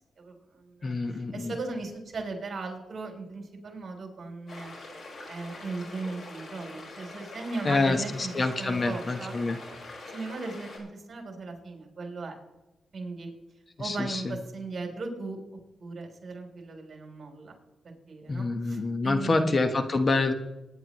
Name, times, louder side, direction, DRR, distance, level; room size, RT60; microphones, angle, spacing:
voice 1, 0.2-4.7 5.2-8.3 8.6-9.3 9.7-9.8 10.1-12.4 12.9-13.3 13.8-15.4 15.8-17.6 17.8-19.5, right 3 dB, 50° right, 2 dB, 3.6 m, -38 dB
voice 2, 0.8-1.5 7.6-9.6 13.8-14.4 18.3-20.3, left 3 dB, 35° left, 7 dB, 1.2 m, -27 dB
sound 1, 4.5-10.8, left 2 dB, 55° left, 5.1 m, -44 dB
22.0 x 10.5 x 3.1 m, 1.0 s
cardioid pair, 85°, 0 cm